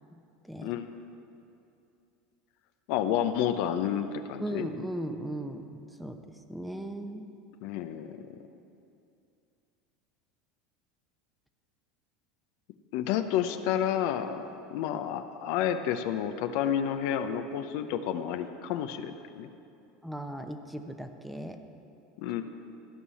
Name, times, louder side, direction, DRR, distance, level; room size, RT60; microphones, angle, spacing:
voice 1, 0.1-0.7 4.4-7.3 20.0-21.6, right 1 dB, ahead, 6 dB, 0.9 m, -38 dB
voice 2, 2.9-4.7 7.6-8.2 12.9-19.5 22.2-22.5, left 9 dB, 65° left, 8 dB, 0.7 m, -30 dB
14.0 x 5.5 x 8.4 m, 2.6 s
hypercardioid pair, 100°, 0 cm